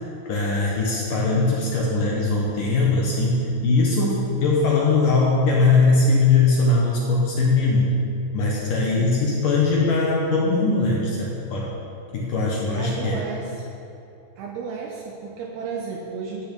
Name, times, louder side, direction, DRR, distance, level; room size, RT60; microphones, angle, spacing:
voice 1, 0.3-8.0 8.3-11.7 12.1-13.2, left 3 dB, 75° left, -3 dB, 1.9 m, -20 dB
voice 2, 8.8-9.1 12.7-13.7 14.4-16.5, right 5 dB, 85° right, 0 dB, 2.2 m, -33 dB
13.0 x 6.8 x 8.3 m, 2.8 s
omnidirectional pair, 5.8 m